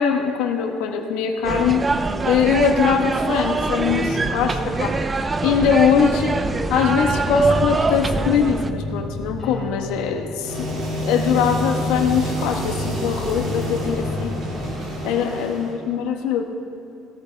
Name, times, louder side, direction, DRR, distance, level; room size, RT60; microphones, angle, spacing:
voice 1, 0.0-1.9 2.2-5.0 5.4-6.4 6.7-14.4 15.0-16.4, left 7 dB, 90° left, 4 dB, 1.3 m, -22 dB
sound 1, 1.4-8.7, right 3 dB, 15° right, 0.4 m, -23 dB
sound 2, 4.0-14.7, left 1 dB, 10° left, 4.1 m, -32 dB
sound 3, 10.4-15.7, equal, 50° right, 3.6 m, -28 dB
17.0 x 16.0 x 3.5 m, 2.6 s
cardioid pair, 175°, 0 cm